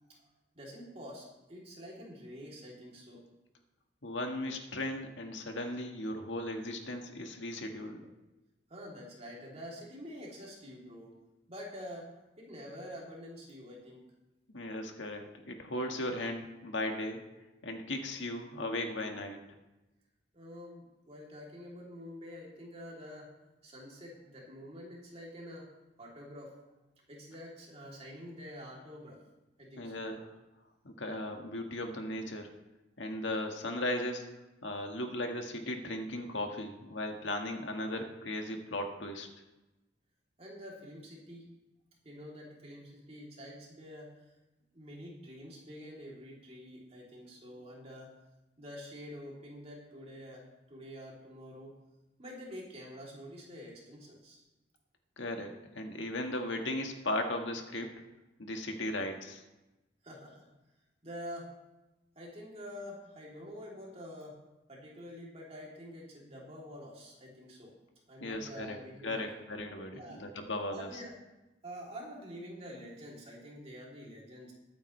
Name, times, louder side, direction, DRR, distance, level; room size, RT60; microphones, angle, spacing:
voice 1, 0.5-3.2 8.7-11.1 11.5-12.1 12.4-14.0 20.3-23.3 23.6-25.7 26.0-26.5 27.1-29.2 29.6-30.0 40.4-41.5 42.0-44.4 44.7-48.1 48.6-51.7 52.2-54.4 60.0-60.5 61.0-61.5 62.1-64.4 64.7-67.8 68.1-69.2 69.9-70.2 70.7-71.1 71.6-74.5, equal, 35° right, -3 dB, 3.1 m, -47 dB
voice 2, 4.0-8.1 14.5-17.2 17.6-19.4 29.8-30.3 30.8-32.5 33.0-34.3 34.6-39.3 55.2-57.9 58.4-59.4 68.2-68.8 69.0-71.0, left 1 dB, 80° left, 3 dB, 1.7 m, -37 dB
22.0 x 9.0 x 3.3 m, 1.0 s
head